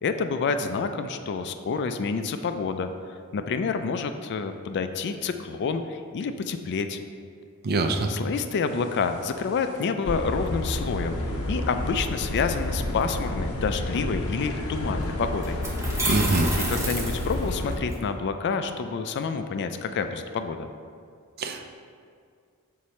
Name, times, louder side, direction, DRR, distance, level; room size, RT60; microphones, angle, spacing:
voice 1, 0.0-2.9 3.3-7.0 8.1-11.2 11.5-15.6 16.7-20.7, left 5 dB, 50° left, 8 dB, 0.4 m, -28 dB
voice 2, 7.6-8.1 16.1-16.5 21.4-21.7, right 3 dB, 45° right, 5 dB, 0.5 m, -24 dB
sound 1, 8.8-9.2 9.6-9.7 10.0-17.8, left 1 dB, 70° left, 0.7 m, -30 dB
sound 2, 14.8-14.9 15.4-17.9, right 1 dB, 15° right, 0.9 m, -30 dB
6.5 x 4.1 x 4.3 m, 2.2 s
head